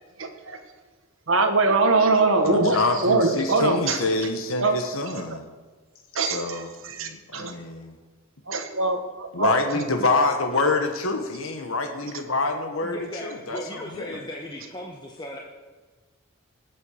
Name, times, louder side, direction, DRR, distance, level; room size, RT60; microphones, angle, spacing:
voice 1, 0.2-0.6 1.3-4.0 4.6-4.7 5.3-5.4 6.1-7.5 8.5-9.8, right 3 dB, 70° right, 4 dB, 1.5 m, -23 dB
voice 2, 2.4-5.5 6.3-6.7 7.0-8.0 9.3-14.2, left 3 dB, 75° left, 5 dB, 1.4 m, -26 dB
voice 3, 12.8-15.4, left 1 dB, 20° left, 0 dB, 1.2 m, -37 dB
18.5 x 8.2 x 6.6 m, 1.3 s
head